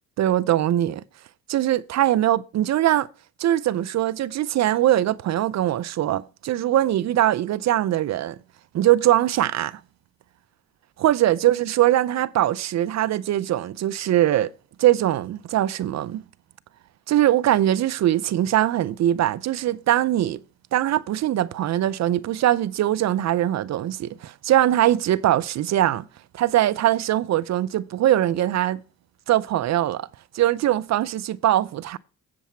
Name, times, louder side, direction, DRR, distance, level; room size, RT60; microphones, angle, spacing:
voice 1, 0.2-1.0 1.5-3.1 3.4-8.4 8.7-9.8 11.0-14.5 14.8-16.2 17.1-20.4 20.7-26.1 26.3-28.8 29.3-30.1 30.3-32.0, right 13 dB, 65° right, 0.6 m, -21 dB
8.3 x 7.6 x 4.4 m
cardioid pair, 90°, 30 cm